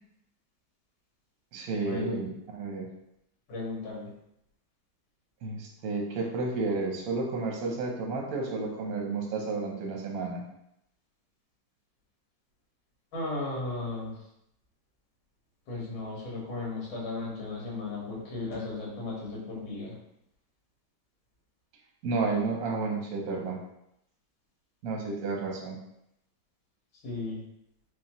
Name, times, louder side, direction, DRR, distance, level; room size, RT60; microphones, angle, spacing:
voice 1, 1.5-2.9 5.4-10.4 22.0-23.6 24.8-25.8, right 3 dB, 60° right, 0 dB, 0.9 m, -31 dB
voice 2, 3.5-4.1 13.1-14.2 15.7-19.9 27.0-27.4, left 3 dB, 70° left, -4 dB, 1.9 m, -35 dB
4.9 x 2.3 x 2.9 m, 0.80 s
omnidirectional pair, 2.2 m